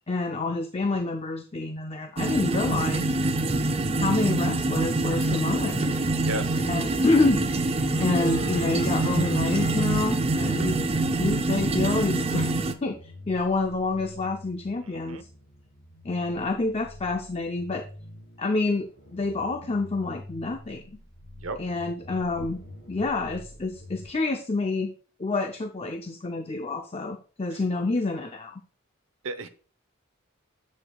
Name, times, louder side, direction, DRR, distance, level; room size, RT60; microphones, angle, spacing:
voice 1, 0.1-3.2 4.0-5.9 6.6-7.4 8.0-10.8 11.2-12.5 12.8-15.3 16.0-17.8 18.4-20.8 21.6-22.6 22.9-24.9 25.2-28.6, left 3 dB, 30° left, 0.5 m, -28 dB
sound 1, 2.2-12.7, right 2 dB, 30° right, 0.5 m, -25 dB
Harp, 5.6-12.0, left 5 dB, 80° left, 1.6 m, -43 dB
voice 2, 6.2-6.7 10.6-10.7 14.8-15.2 21.4-21.6 27.5-27.6 29.2-29.5, right 2 dB, 80° right, 0.8 m, -35 dB
sound 2, 7.2-24.1, left 1 dB, 55° left, 1.7 m, -46 dB
9.7 x 8.0 x 2.3 m
head